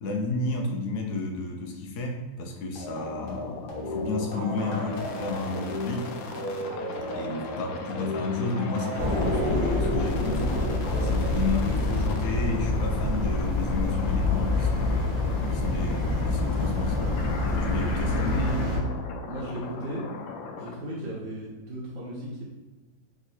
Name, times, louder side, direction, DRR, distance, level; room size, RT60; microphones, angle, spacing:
voice 1, 0.0-6.1 7.1-10.4 11.0-15.1 15.5-17.2 17.5-18.5, left 3 dB, 70° left, 1 dB, 0.8 m, -32 dB
sound 1, 2.7-12.0, equal, 40° left, 0.9 m, -36 dB
sound 2, 3.0-20.8, left 5 dB, 85° left, 1.3 m, -39 dB
sound 3, 9.0-18.8, left 2 dB, 25° left, 1.3 m, -26 dB
voice 2, 19.3-20.1 20.6-22.4, right 1 dB, 80° right, -6 dB, 1.5 m, -36 dB
3.6 x 3.1 x 4.2 m, 1.2 s
omnidirectional pair, 2.0 m